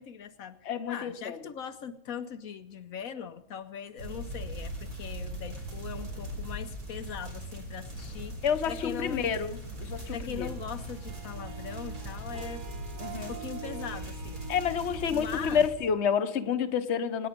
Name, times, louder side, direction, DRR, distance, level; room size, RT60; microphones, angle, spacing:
voice 1, 0.0-8.4 8.6-9.3 10.1-12.6 13.3-14.4 15.1-15.7, left 7 dB, 75° left, 1.2 m, -40 dB
voice 2, 0.7-1.4 8.4-10.5 13.0-13.3 14.5-17.3, left 7 dB, 55° left, 1.2 m, -29 dB
sound 1, 4.0-15.7, right 1 dB, 80° right, 4.8 m, -39 dB
Harp, 10.4-16.7, right 6 dB, 40° right, 0.9 m, -46 dB
25.5 x 10.5 x 5.2 m
omnidirectional pair, 1.5 m